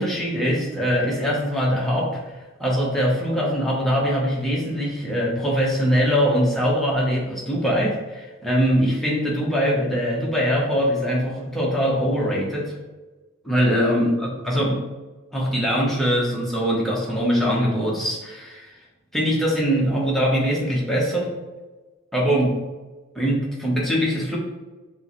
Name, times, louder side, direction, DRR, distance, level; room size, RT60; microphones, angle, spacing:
voice 1, 0.0-2.2 2.6-12.7 13.4-14.8 15.3-18.7 19.1-21.3 22.1-22.6 23.1-24.4, equal, ahead, -5 dB, 0.8 m, -22 dB
6.2 x 2.1 x 3.0 m, 1.2 s
head